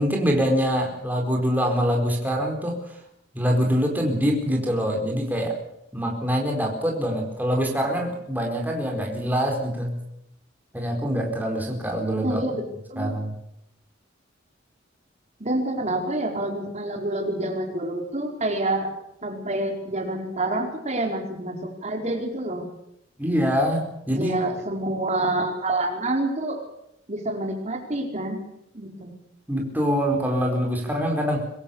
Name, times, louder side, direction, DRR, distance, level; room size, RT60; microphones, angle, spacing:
voice 1, 0.0-2.8 3.3-5.6 5.9-10.0 10.7-12.4 13.0-13.3 23.2-24.3 29.5-31.5, equal, 10° right, 1 dB, 4.5 m, -24 dB
voice 2, 12.2-12.6 12.9-13.2 15.4-18.9 19.2-22.7 24.1-26.6 27.1-28.4 28.7-29.1, right 1 dB, 35° right, 2 dB, 4.5 m, -27 dB
25.5 x 20.5 x 7.1 m, 0.78 s
head